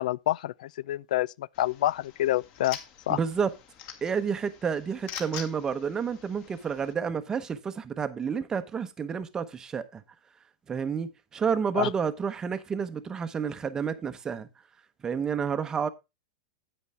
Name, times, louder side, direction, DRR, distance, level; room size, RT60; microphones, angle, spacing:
voice 1, 0.0-2.8 3.1-3.2 11.8-11.9, left 14 dB, 70° left, 0.4 m, -27 dB
sound 1, 1.5-6.9, left 8 dB, 35° left, 1.7 m, -45 dB
voice 2, 3.1-3.5 4.0-10.0 10.7-14.5 15.0-15.9, right 6 dB, 15° right, 0.8 m, -30 dB
9.8 x 8.7 x 3.4 m
supercardioid pair, 155°, 4 cm